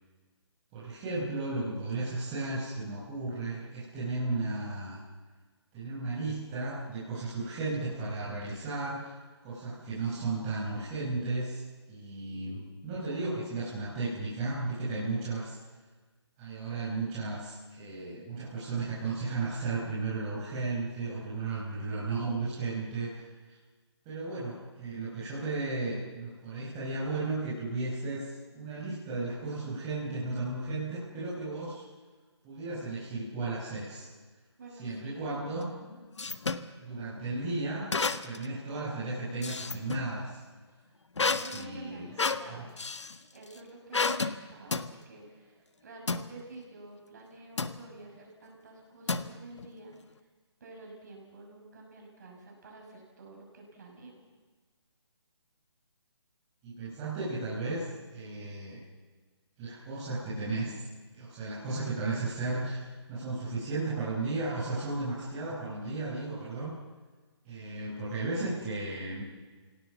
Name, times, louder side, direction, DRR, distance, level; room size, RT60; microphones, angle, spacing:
voice 1, 0.7-5.0 5.7-9.1 9.4-11.6 11.9-15.6 16.4-23.2 24.0-31.8 32.4-34.1 34.8-35.7 36.8-37.8 38.2-40.4 41.2-42.1 42.5-42.7 56.6-57.8 58.1-58.8 59.6-60.7 61.1-66.8 67.4-69.2, right 3 dB, 15° right, -8 dB, 4.8 m, -34 dB
voice 2, 34.6-35.4 35.9-36.3 40.7-40.8 41.2-42.7 43.3-50.0 50.6-54.2, right 2 dB, 40° right, 0 dB, 6.5 m, -49 dB
sound 1, 35.6-36.7 37.9-38.5 38.9-40.1 41.2-43.2 43.9-44.4 44.7-44.9 46.1-46.3 47.6-47.8 49.1-49.7, left 4 dB, 85° left, 1.5 m, -31 dB
29.0 x 18.0 x 7.3 m, 1.4 s
hypercardioid pair, 170°, 15 cm